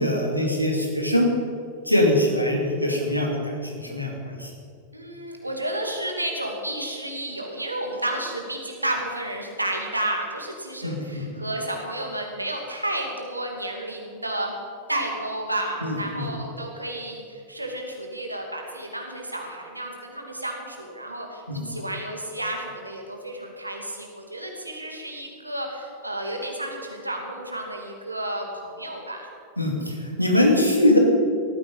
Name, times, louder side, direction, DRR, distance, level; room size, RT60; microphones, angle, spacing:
voice 1, 0.0-1.3 1.9-4.5 10.8-11.2 15.8-16.3 21.5-21.7 29.6-31.0, left 1 dB, 90° left, 0 dB, 2.9 m, -22 dB
voice 2, 4.9-14.6 14.9-29.3, right 1 dB, 85° right, 1 dB, 2.7 m, -31 dB
18.0 x 14.5 x 5.6 m, 2.4 s
figure-of-eight pair, 90°, 0 cm